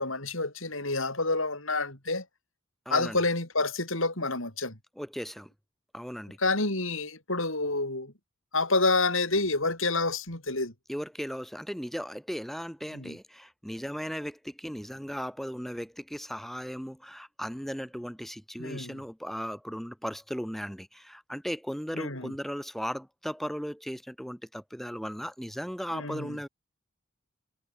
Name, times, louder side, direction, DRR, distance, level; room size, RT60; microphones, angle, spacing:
voice 1, 0.0-2.3 2.9-4.8 6.4-8.1 8.5-10.7 12.9-13.2 18.6-19.0 22.0-22.3 25.9-26.4, left 3 dB, 70° left, 7.3 m, -28 dB
voice 2, 2.8-3.2 5.0-5.5 5.9-6.4 10.9-26.5, equal, ahead, 5.1 m, -37 dB
head